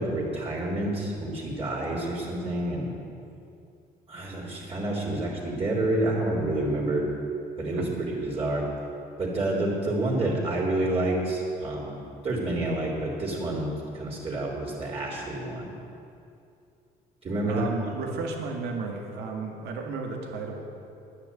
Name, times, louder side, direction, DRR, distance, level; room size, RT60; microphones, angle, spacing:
voice 1, 0.0-2.9 4.1-7.0 7.6-8.6 9.2-15.7 17.2-17.6, right 1 dB, 35° right, -5 dB, 3.4 m, -28 dB
voice 2, 17.5-20.8, right 4 dB, 80° right, 2 dB, 2.0 m, -33 dB
10.0 x 9.8 x 9.4 m, 2.6 s
cardioid pair, 110°, 17 cm